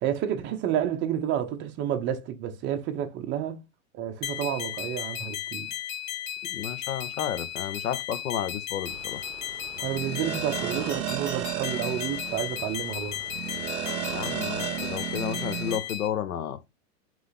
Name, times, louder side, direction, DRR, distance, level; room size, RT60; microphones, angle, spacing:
voice 1, 0.0-3.6 3.9-5.7 9.8-13.2, right 10 dB, 25° right, 0.7 m, -30 dB
sound 1, 4.2-16.1, left 11 dB, 60° left, 1.7 m, -35 dB
voice 2, 6.5-9.2 14.1-16.6, left 9 dB, 85° left, 0.7 m, -32 dB
sound 2, 8.9-15.8, right 11 dB, 90° right, 0.6 m, -34 dB
3.8 x 3.2 x 4.0 m
hypercardioid pair, 120°, 42 cm